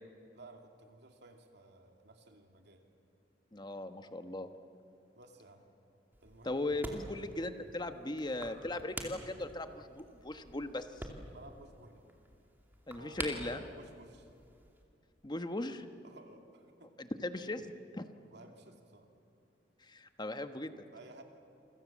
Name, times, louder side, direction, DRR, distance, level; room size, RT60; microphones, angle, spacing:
voice 1, 0.3-2.9 5.1-5.6 6.2-7.2 11.3-12.2 13.0-14.3 16.0-17.0 18.3-19.1 20.9-21.2, right 2 dB, 65° right, 3 dB, 2.8 m, -55 dB
voice 2, 3.5-4.5 6.4-10.9 12.9-13.6 15.2-15.8 17.0-17.7 17.9-18.1 19.8-20.8, left 2 dB, 25° left, 8 dB, 1.2 m, -38 dB
sound 1, 6.1-14.8, right 1 dB, 10° right, 2.7 m, -48 dB
28.5 x 25.0 x 7.5 m, 2.5 s
head